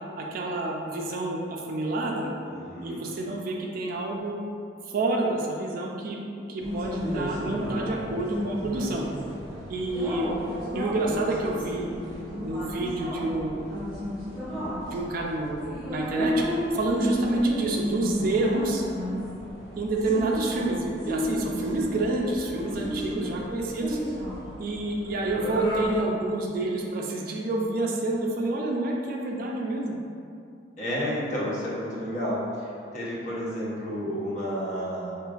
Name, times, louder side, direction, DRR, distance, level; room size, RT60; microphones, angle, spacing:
voice 1, 0.2-2.3 2.8-4.4 4.9-9.1 9.7-10.3 10.7-11.9 12.4-13.7 14.5-18.8 19.8-24.0 24.6-30.0, right 2 dB, 50° right, 0 dB, 0.3 m, -28 dB
voice 2, 2.5-3.1 14.4-14.8 22.6-23.3 30.8-35.2, equal, 40° left, -8 dB, 0.7 m, -32 dB
sound 1, 6.6-26.0, left 1 dB, 25° right, 1.3 m, -32 dB
3.7 x 2.4 x 2.4 m, 2.4 s
head